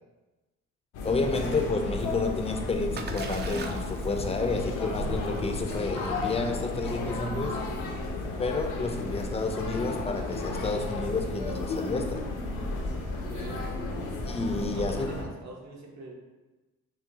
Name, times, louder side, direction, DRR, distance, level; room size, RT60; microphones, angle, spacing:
sound 1, 0.9-15.2, left 2 dB, 85° left, 0.8 m, -33 dB
voice 1, 1.0-7.6 8.4-12.3 14.3-15.1, left 3 dB, 20° left, 5 dB, 0.5 m, -30 dB
Splash splatter, 2.3-12.1, right 4 dB, 35° right, 0.4 m, -46 dB
voice 2, 13.1-13.7 14.5-16.1, right 2 dB, 60° right, -1 dB, 1.0 m, -43 dB
6.0 x 2.2 x 2.8 m, 1.1 s
cardioid pair, 90°, 30 cm